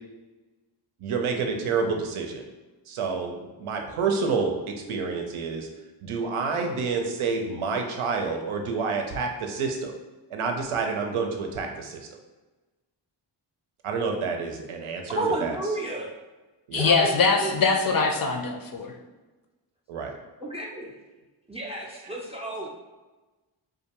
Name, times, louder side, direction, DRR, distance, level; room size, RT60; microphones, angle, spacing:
voice 1, 1.0-2.5 2.9-4.6 4.9-5.7 6.0-9.9 10.3-12.1 13.8-15.8 16.7-16.9 19.9-20.1 21.9-22.7, right 4 dB, 80° right, 3 dB, 0.6 m, -29 dB
voice 2, 15.1-16.1 16.7-17.5 20.4-20.9 21.5-22.7, right 2 dB, 15° right, -2 dB, 0.3 m, -31 dB
voice 3, 16.7-18.9, left 4 dB, 45° left, 3 dB, 0.5 m, -22 dB
2.4 x 2.2 x 2.8 m, 1.2 s
cardioid pair, 45°, 49 cm